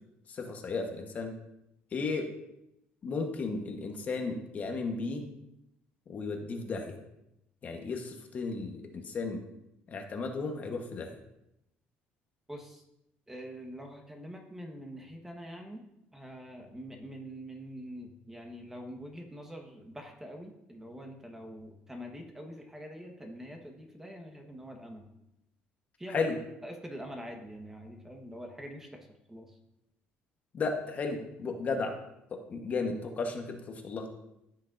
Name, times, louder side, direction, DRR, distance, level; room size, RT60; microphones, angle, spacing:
voice 1, 0.3-1.3 1.9-2.3 3.0-5.2 6.1-6.9 7.6-9.4 9.9-11.2 26.1-26.3 30.5-31.9 32.5-34.1, left 4 dB, 40° left, 4 dB, 1.1 m, -34 dB
voice 2, 12.5-12.8 13.3-15.8 16.1-25.1 26.0-26.3 26.6-29.6, equal, 10° right, 3 dB, 1.2 m, -45 dB
14.5 x 6.3 x 2.6 m, 0.85 s
cardioid pair, 125°, 4 cm